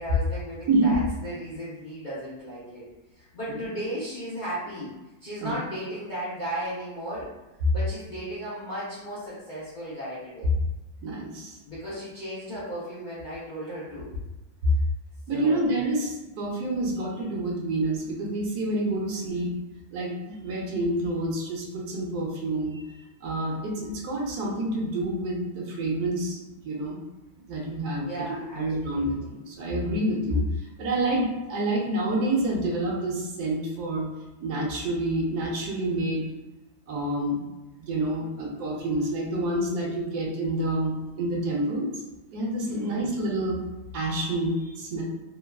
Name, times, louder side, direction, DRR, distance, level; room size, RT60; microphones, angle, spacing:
voice 1, 0.0-2.8 3.2-4.9 5.2-7.3 7.7-10.5 11.6-14.1 15.3-15.6 28.0-29.3 42.7-43.1, equal, 50° left, -11 dB, 0.6 m, -35 dB
voice 2, 11.0-11.6 15.3-19.5 19.9-22.9 23.2-27.0 27.4-34.1 34.4-36.2 36.9-37.4 37.8-42.0 42.3-43.6 43.9-45.0, right 1 dB, 80° right, -1 dB, 1.2 m, -28 dB
3.2 x 2.3 x 2.2 m, 1.0 s
omnidirectional pair, 1.7 m